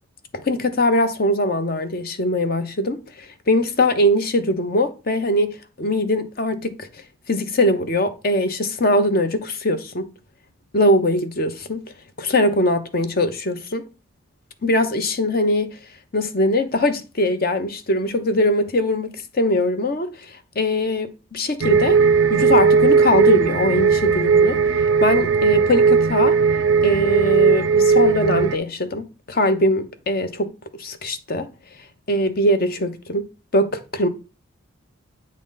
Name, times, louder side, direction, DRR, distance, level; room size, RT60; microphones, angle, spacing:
voice 1, 0.4-6.9 7.3-10.1 10.7-11.8 12.2-13.8 14.6-15.8 16.1-22.0 22.3-24.6 25.0-26.4 26.8-31.5 32.1-33.3 33.5-34.1, left 1 dB, 45° left, 0.8 m, -21 dB
sound 1, 21.6-28.6, right 5 dB, 65° right, 0.4 m, -17 dB
8.5 x 3.9 x 3.8 m
head